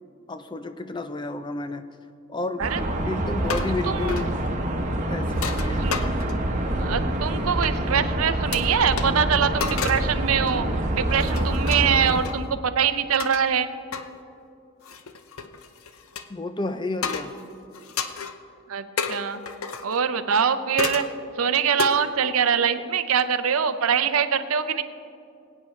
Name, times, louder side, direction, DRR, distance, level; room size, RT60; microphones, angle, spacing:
voice 1, 0.3-1.9 2.3-2.7 3.0-4.3 5.1-5.9 16.3-17.3, left 2 dB, 20° left, 9 dB, 0.4 m, -31 dB
sound 1, 2.6-12.2, right 1 dB, 35° right, 1.0 m, -26 dB
sound 2, 3.4-3.8 4.1-4.3 5.3-6.5 7.6-7.7 8.5-8.6 8.9-9.1 9.6-10.1 10.5-10.7 11.1-12.4 13.2-13.4 13.9-14.1 14.8-16.3 17.0-17.4 17.7-18.4 19.0-20.0 20.8-21.1 21.8-21.9, left 6 dB, 80° left, 0.7 m, -31 dB
voice 2, 6.8-13.7 18.7-19.4 19.8-21.1 21.4-24.8, right 7 dB, 85° right, 11 dB, 0.6 m, -23 dB
22.0 x 8.9 x 3.2 m, 2.5 s
head